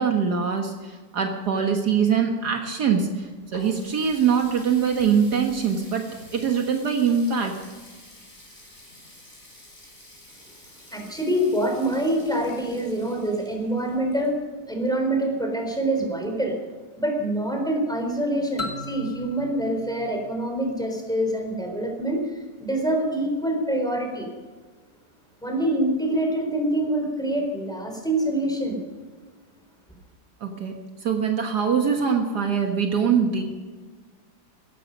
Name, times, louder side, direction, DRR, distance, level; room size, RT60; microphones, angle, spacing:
voice 1, 0.0-3.3 3.5-6.0 6.3-7.5 30.4-30.7 31.0-33.4, right 6 dB, 70° right, 3 dB, 2.0 m, -23 dB
Water tap faucet, 3.1-14.7, left 1 dB, 40° left, 5.4 m, -49 dB
voice 2, 10.9-14.4 14.7-16.5 17.0-24.3 25.4-28.8, right 1 dB, ahead, 2 dB, 3.7 m, -25 dB
sound 1, 18.6-21.3, left 3 dB, 20° left, 1.5 m, -38 dB
17.0 x 14.0 x 5.3 m, 1.4 s
omnidirectional pair, 1.8 m